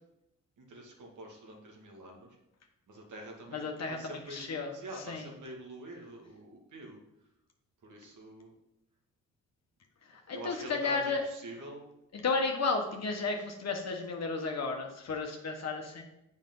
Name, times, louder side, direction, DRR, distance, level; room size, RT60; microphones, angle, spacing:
voice 1, 0.6-2.4 2.9-7.0 7.8-8.5 10.3-11.9 13.4-13.5, right 1 dB, 60° right, 0 dB, 2.2 m, -46 dB
voice 2, 3.5-4.7 5.1-5.3 10.1-11.2 12.1-16.0, left 4 dB, 50° left, 2 dB, 1.3 m, -33 dB
7.4 x 5.3 x 5.5 m, 0.88 s
supercardioid pair, 60°, 34 cm